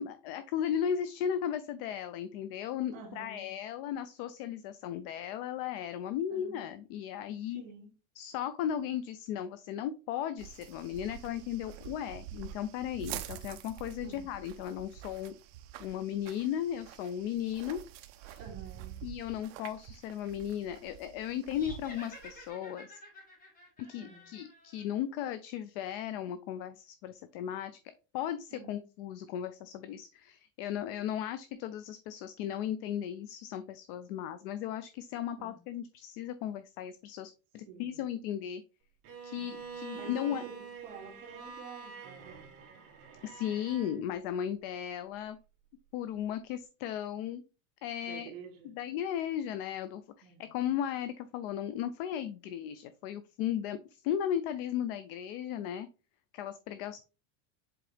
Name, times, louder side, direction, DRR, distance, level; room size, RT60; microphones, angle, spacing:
voice 1, 0.0-7.6 8.2-15.3 15.8-17.8 18.2-18.4 19.0-23.0 23.9-27.7 28.1-38.6 39.2-40.4 43.2-45.4 45.9-47.4 47.8-48.3 48.7-53.8 54.0-55.9 56.3-57.0, left 10 dB, 45° left, 0.5 m, -36 dB
voice 2, 2.9-3.5 6.3-6.6 7.5-7.9 14.0-14.3 18.4-19.0 23.9-24.3 28.5-28.8 35.4-35.6 37.7-38.1 39.4-42.6 48.0-48.7 50.2-50.5, right 6 dB, 75° right, 2.4 m, -50 dB
sound 1, 10.4-22.5, right 13 dB, 50° right, 0.8 m, -47 dB
sound 2, 21.5-24.9, left 1 dB, 20° left, 2.2 m, -51 dB
Bowed string instrument, 39.0-44.0, right 5 dB, 35° right, 2.0 m, -46 dB
7.7 x 3.7 x 3.3 m
supercardioid pair, 170°, 41 cm